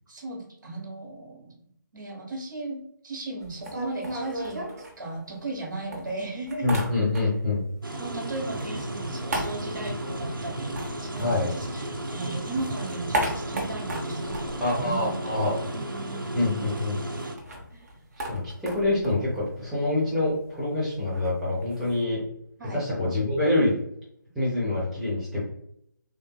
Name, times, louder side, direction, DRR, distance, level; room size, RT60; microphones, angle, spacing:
voice 1, 0.1-1.6 1.9-4.6 5.0-6.7 7.1-7.3 8.0-15.5 15.7-16.7 17.7-17.8 22.6-22.8, right 2 dB, 65° right, 0 dB, 1.2 m, -36 dB
sound 1, 3.4-5.6 5.9-7.5 7.8-12.0 12.3-15.6 15.9-16.0 16.2-22.0, right 1 dB, 50° right, 0.7 m, -36 dB
voice 2, 6.6-7.6 11.2-11.5 14.6-15.5 16.3-17.0 18.3-22.2 22.7-23.7 24.3-25.4, left 2 dB, ahead, -12 dB, 0.8 m, -26 dB
sound 2, 7.8-17.3, right 1 dB, 90° right, 0.6 m, -34 dB
3.4 x 2.5 x 2.2 m, 0.72 s
figure-of-eight pair, 145°, 11 cm